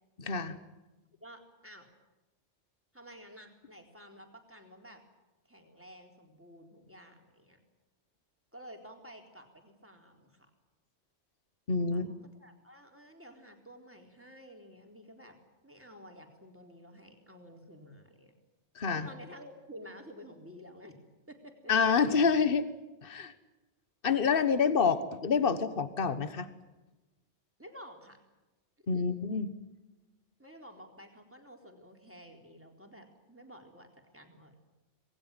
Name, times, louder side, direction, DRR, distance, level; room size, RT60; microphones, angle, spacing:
voice 1, 0.2-0.6 11.7-12.1 18.7-19.1 21.7-22.7 23.0-23.3 24.0-26.5 28.9-29.5, left 5 dB, 50° left, 12 dB, 1.5 m, -27 dB
voice 2, 1.2-1.9 2.9-5.0 5.5-7.6 8.5-10.5 11.9-15.4 15.6-18.3 18.9-20.9 21.3-21.7 27.6-28.2 28.9-29.2 30.4-34.6, equal, 10° right, 3 dB, 3.9 m, -52 dB
27.0 x 20.5 x 9.1 m, 1.1 s
omnidirectional pair, 1.2 m